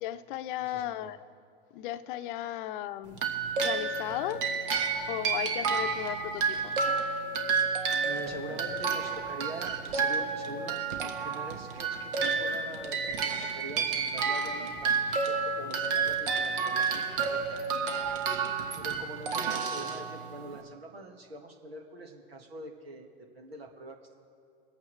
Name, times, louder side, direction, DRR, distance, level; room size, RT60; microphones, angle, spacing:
voice 1, 0.0-1.2 1.7-3.2 3.6-4.4 5.1-6.7, left 13 dB, 60° left, 12 dB, 0.7 m, -35 dB
voice 2, 0.7-1.1 7.9-14.9 15.2-17.4 18.8-23.1 23.3-24.2, right 1 dB, 90° right, 3 dB, 1.7 m, -44 dB
sound 1, 3.1-20.6, right 5 dB, 65° right, 1.5 m, -30 dB
23.0 x 8.6 x 3.2 m, 2.4 s
hypercardioid pair, 95°, 29 cm